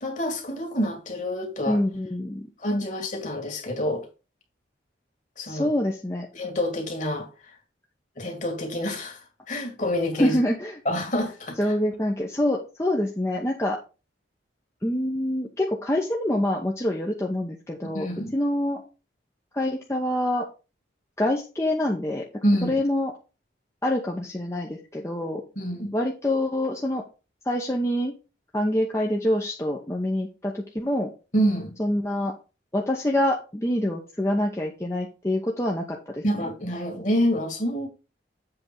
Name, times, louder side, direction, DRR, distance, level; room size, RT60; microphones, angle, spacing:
voice 1, 0.0-1.8 2.6-4.1 5.4-5.7 6.3-7.3 8.2-10.4 10.9-11.7 17.9-18.4 22.4-22.8 25.6-25.9 31.3-31.7 36.2-37.9, equal, 40° left, 2.1 m, -27 dB
voice 2, 1.7-2.5 5.5-6.3 10.2-10.7 11.6-13.8 14.8-18.8 19.5-20.5 21.2-23.1 23.8-25.4 25.9-27.0 27.4-28.1 28.5-31.1 31.8-32.4 32.7-36.4, left 1 dB, 15° left, 0.8 m, -26 dB
7.8 x 3.5 x 6.0 m
head